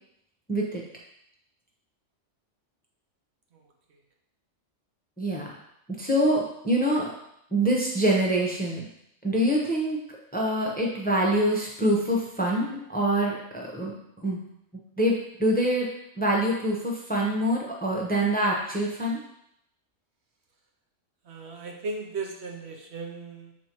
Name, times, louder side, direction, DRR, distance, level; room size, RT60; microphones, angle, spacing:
voice 1, 0.5-0.8 5.2-5.5 6.0-7.0 7.5-8.8 9.2-10.0 10.3-13.9 14.2-14.4 15.0-15.9 16.2-19.2, right 1 dB, 10° left, -2 dB, 0.8 m, -25 dB
voice 2, 21.2-23.5, right 3 dB, 65° right, 1 dB, 1.0 m, -36 dB
7.4 x 4.2 x 3.0 m, 0.74 s
omnidirectional pair, 1.2 m